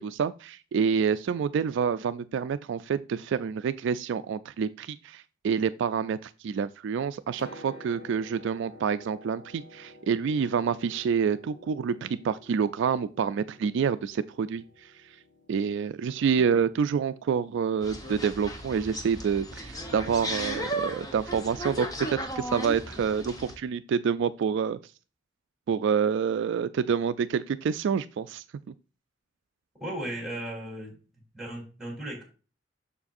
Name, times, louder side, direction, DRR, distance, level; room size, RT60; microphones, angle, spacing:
voice 1, 0.0-14.9 15.5-24.8 25.7-28.4, right 6 dB, 65° right, 0.3 m, -28 dB
Piano, 7.1-20.9 22.0-22.1, left 2 dB, 40° left, 1.9 m, -52 dB
sound 1, 17.8-23.6, equal, 20° left, 1.1 m, -35 dB
voice 2, 29.7-31.0 31.3-32.2, right 1 dB, ahead, 3.6 m, -36 dB
7.1 x 6.6 x 2.5 m
head